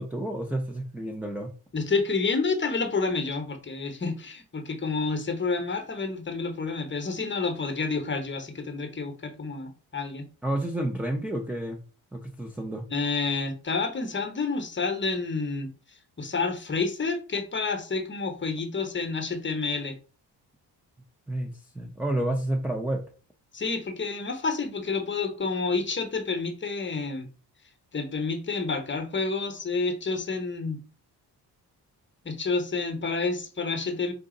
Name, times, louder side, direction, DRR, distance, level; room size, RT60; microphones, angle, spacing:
voice 1, 0.0-1.5 10.4-11.8 12.1-12.8 21.3-23.0, right 1 dB, 5° right, 0.7 m, -30 dB
voice 2, 1.7-10.3 12.9-15.7 16.2-20.0 23.5-27.3 27.9-30.8 32.2-34.1, left 4 dB, 30° left, 1.0 m, -29 dB
4.9 x 2.6 x 3.8 m
cardioid pair, 85°, 41 cm